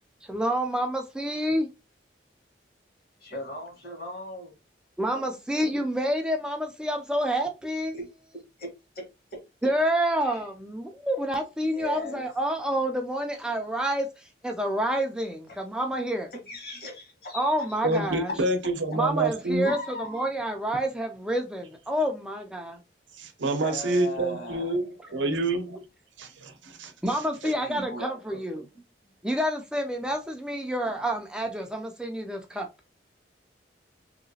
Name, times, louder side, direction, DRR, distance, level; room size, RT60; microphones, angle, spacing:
voice 1, 0.3-1.7 5.0-7.9 9.6-16.3 17.3-18.3 18.9-22.8 27.0-28.6 29.2-32.7, right 1 dB, 5° right, 0.3 m, -28 dB
voice 2, 3.2-4.5 5.1-5.2 5.5-5.7 7.9-8.1 8.6-8.7 8.9-9.0 9.3-9.7 10.2-10.4 11.6-12.3 15.5-15.6 16.3-18.4 19.7-20.3 23.6-24.8 25.1-25.4 27.4-28.4, left 1 dB, 55° left, 1.4 m, -38 dB
voice 3, 17.8-19.7 23.1-25.8 26.2-27.2, right 2 dB, 85° right, 0.6 m, -28 dB
3.1 x 2.8 x 2.7 m
head